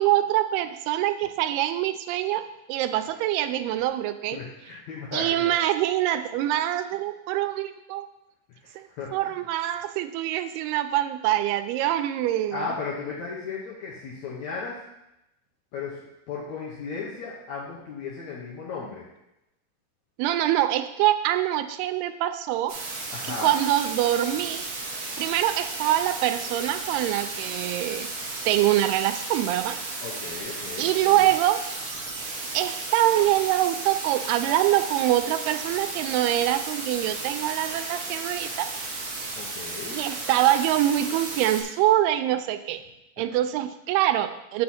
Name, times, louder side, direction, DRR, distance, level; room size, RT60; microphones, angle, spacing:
voice 1, 0.0-4.4 5.1-8.1 8.8-8.9 9.1-12.7 20.2-22.7 23.3-24.7 25.2-28.1 28.5-29.8 30.8-31.6 32.5-38.7 39.9-42.8 43.2-44.6, right 13 dB, 90° right, 10 dB, 2.6 m, -24 dB
voice 2, 4.3-5.6 8.5-9.3 12.5-14.8 15.7-19.1 23.1-23.5 30.0-31.3 39.4-40.0, left 5 dB, 70° left, -5 dB, 1.8 m, -35 dB
sound 1, 22.7-41.6, right 3 dB, 70° right, 1.3 m, -34 dB
7.7 x 6.2 x 4.2 m, 0.88 s
omnidirectional pair, 4.5 m